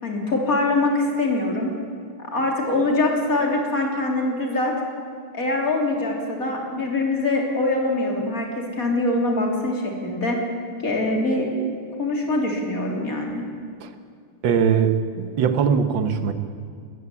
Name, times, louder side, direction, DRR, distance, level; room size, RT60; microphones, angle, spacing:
voice 1, 0.0-1.7 2.2-4.7 5.3-10.4 10.8-13.4, left 2 dB, 40° left, 0 dB, 3.8 m, -23 dB
voice 2, 14.4-16.3, right 7 dB, 60° right, 9 dB, 1.9 m, -21 dB
21.0 x 14.5 x 8.5 m, 2.3 s
omnidirectional pair, 2.4 m